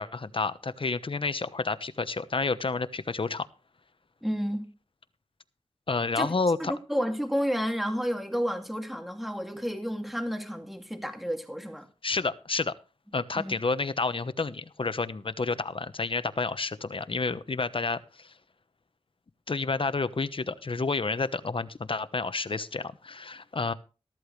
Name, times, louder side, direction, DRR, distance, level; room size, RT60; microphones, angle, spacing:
voice 1, 0.0-3.5 5.9-6.7 12.0-12.7 13.1-18.3 19.5-23.7, left 4 dB, 55° left, 1.0 m, -30 dB
voice 2, 4.2-4.7 6.2-6.3 6.6-11.9 13.3-13.5, equal, ahead, 2.4 m, -31 dB
13.5 x 13.5 x 3.2 m
cardioid pair, 45°, 11 cm